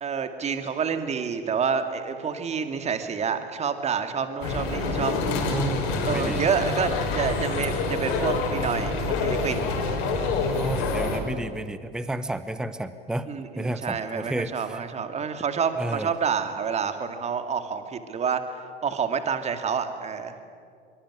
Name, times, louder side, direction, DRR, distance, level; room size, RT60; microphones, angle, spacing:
voice 1, 0.0-5.2 6.1-9.7 13.3-18.4 18.8-20.3, right 6 dB, 20° right, 8 dB, 2.3 m, -28 dB
sound 1, 4.4-11.2, left 3 dB, 45° left, 5.4 m, -27 dB
voice 2, 5.5-6.5 10.6-13.3 13.6-14.8 15.8-16.1, right 1 dB, ahead, 13 dB, 1.0 m, -31 dB
25.5 x 23.5 x 9.9 m, 2.3 s
figure-of-eight pair, 85°, 30 cm